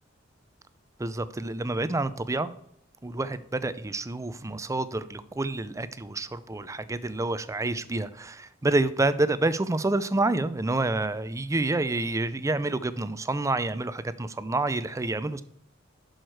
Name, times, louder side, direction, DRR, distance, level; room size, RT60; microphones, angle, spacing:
voice 1, 1.0-2.5 3.0-15.4, right 2 dB, 15° right, 14 dB, 0.5 m, -28 dB
10.5 x 6.5 x 4.6 m, 0.71 s
head